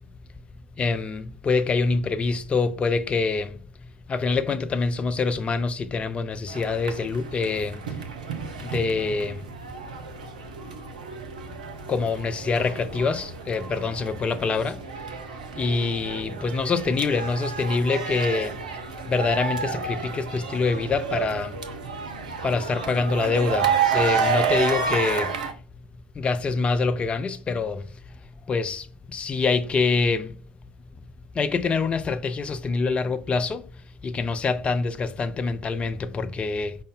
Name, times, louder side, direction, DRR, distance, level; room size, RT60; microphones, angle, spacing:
voice 1, 0.8-3.6 4.1-7.8 8.6-9.4 11.9-14.8 15.6-18.6 19.0-21.6 22.4-25.3 26.2-27.9 28.5-30.3 31.3-33.6 34.0-36.8, left 4 dB, 25° left, 0.4 m, -25 dB
sound 1, 6.5-25.5, right 6 dB, 75° right, 0.5 m, -30 dB
5.1 x 2.1 x 3.6 m
figure-of-eight pair, 65°, 4 cm